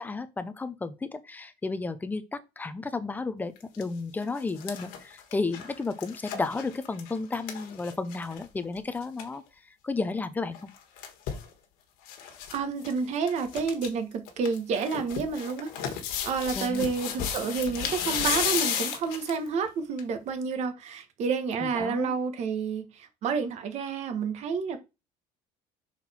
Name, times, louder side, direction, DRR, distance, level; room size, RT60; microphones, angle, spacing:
voice 1, 0.0-9.4 9.8-10.7 16.6-16.9 21.6-22.2, left 3 dB, 10° left, 0.5 m, -33 dB
sound 1, 3.6-3.8 4.2-8.4 8.8-8.9 9.0-9.3 10.5-11.5 12.1-12.6 12.8-12.9 13.3-13.9 14.3-19.5 20.0-20.1, left 8 dB, 90° left, 1.5 m, -33 dB
voice 2, 12.5-16.0 16.2-24.8, right 5 dB, 45° right, 1.2 m, -30 dB
6.0 x 4.3 x 4.2 m
cardioid pair, 160°, 15 cm